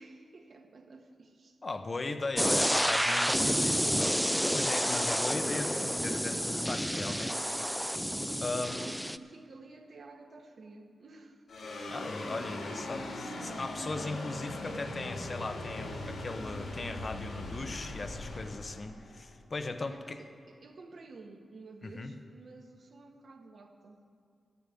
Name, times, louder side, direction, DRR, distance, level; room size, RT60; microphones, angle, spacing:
voice 1, 0.0-1.6 6.7-8.3 8.7-11.4 19.9-24.0, right 3 dB, 60° right, 4 dB, 1.4 m, -52 dB
voice 2, 1.6-7.3 8.4-8.8 11.9-20.2 21.8-22.1, left 3 dB, 40° left, 8 dB, 0.9 m, -38 dB
sound 1, 2.4-9.2, equal, ahead, 0.4 m, -29 dB
sound 2, 11.5-20.0, left 1 dB, 70° left, 2.3 m, -40 dB
13.5 x 7.0 x 9.3 m, 2.2 s
cardioid pair, 85°, 0 cm